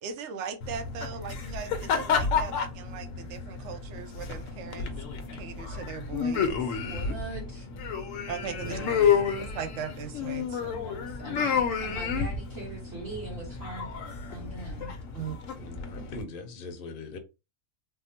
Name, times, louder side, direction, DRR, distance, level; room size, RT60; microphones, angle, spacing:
voice 1, 0.0-4.9 5.3-6.8 8.3-8.8 9.4-10.8 15.2-15.4, right 7 dB, 70° right, 0.8 m, -39 dB
sound 1, 0.6-16.2, left 6 dB, 80° left, 1.0 m, -31 dB
voice 2, 6.8-7.7 8.6-9.2 10.7-13.9 14.3-14.9, right 2 dB, 55° right, 1.7 m, -42 dB
voice 3, 15.6-17.2, left 3 dB, 55° left, 0.7 m, -41 dB
3.5 x 2.0 x 2.7 m
omnidirectional pair, 1.4 m